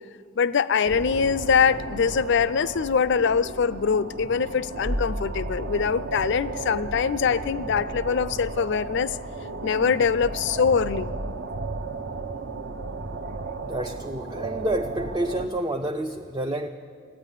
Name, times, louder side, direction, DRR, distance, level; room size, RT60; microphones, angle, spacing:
voice 1, 0.4-9.2 9.6-11.1, left 6 dB, 60° left, 17 dB, 0.4 m, -23 dB
sound 1, 0.8-15.5, right 2 dB, 60° right, 0.8 m, -34 dB
voice 2, 13.6-16.7, right 1 dB, 20° right, 4 dB, 0.4 m, -29 dB
15.0 x 9.8 x 9.9 m, 2.1 s
head